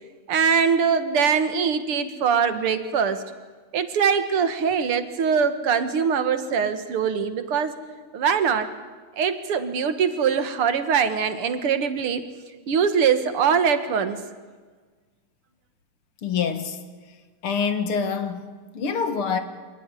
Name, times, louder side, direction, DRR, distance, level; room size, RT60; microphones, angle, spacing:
voice 1, 0.3-3.2 3.7-7.7 8.1-8.7 9.2-12.2 12.7-14.2, right 6 dB, 90° right, 2.5 m, -22 dB
voice 2, 16.2-16.8 17.4-18.5 18.7-19.4, left 6 dB, 85° left, 2.7 m, -25 dB
26.0 x 18.5 x 9.9 m
omnidirectional pair, 2.4 m